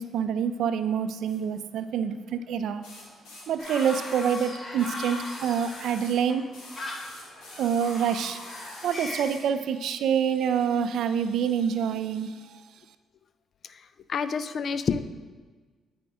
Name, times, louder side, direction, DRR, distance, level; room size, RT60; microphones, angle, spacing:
voice 1, 0.0-2.9 3.5-6.5 7.6-8.4 8.8-12.6, right 7 dB, 75° right, 10 dB, 0.4 m, -27 dB
sound 1, 1.2-1.4 2.8-6.2 6.5-9.5 10.4-10.5, left 2 dB, 80° left, 2.0 m, -46 dB
sound 2, 3.6-9.2, left 1 dB, 35° left, 1.4 m, -39 dB
voice 2, 14.1-15.0, left 6 dB, 55° left, 12 dB, 0.4 m, -27 dB
9.2 x 5.1 x 3.5 m, 1.5 s
cardioid pair, 90°, 0 cm